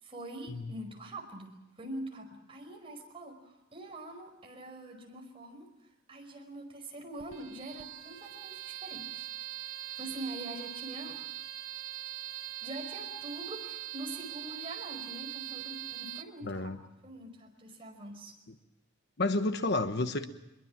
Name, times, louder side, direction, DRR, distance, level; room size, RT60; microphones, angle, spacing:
voice 1, 0.0-5.7 6.1-9.3 9.6-11.2 12.6-16.7 17.0-18.3, right 1 dB, 25° right, 2 dB, 5.2 m, -44 dB
sound 1, 7.2-16.2, right 12 dB, 80° right, 1.2 m, -42 dB
voice 2, 16.4-16.8 18.5-18.6 19.2-20.3, left 2 dB, 50° left, 8 dB, 1.2 m, -30 dB
24.0 x 22.5 x 7.5 m, 0.96 s
head